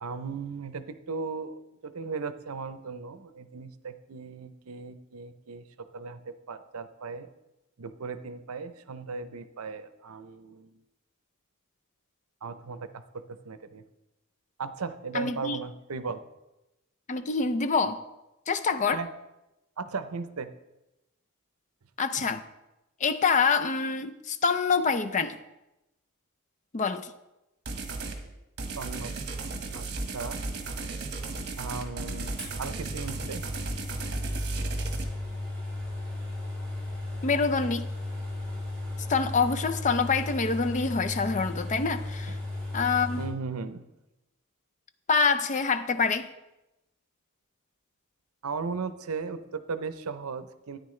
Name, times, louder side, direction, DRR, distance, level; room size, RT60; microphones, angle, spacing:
voice 1, 0.0-5.6 5.9-7.3 7.8-10.7 12.4-13.8 14.6-16.2 18.9-19.1 19.8-20.5 28.8-29.1 29.7-29.9 30.1-30.4 31.6-33.4 42.3-42.4 43.2-43.8 48.4-50.8, right 4 dB, 80° right, 0.6 m, -37 dB
voice 2, 15.1-15.6 17.1-18.0 18.5-19.0 22.0-22.4 23.0-25.4 26.7-27.1 37.2-37.9 39.1-42.4 42.7-43.2 45.1-46.3, left 5 dB, 35° left, 0.5 m, -26 dB
sound 1, 27.7-28.2 28.6-35.0, right 3 dB, 50° right, 1.4 m, -34 dB
sound 2, 32.4-43.3, left 2 dB, 5° left, 3.9 m, -35 dB
13.0 x 9.5 x 3.2 m
head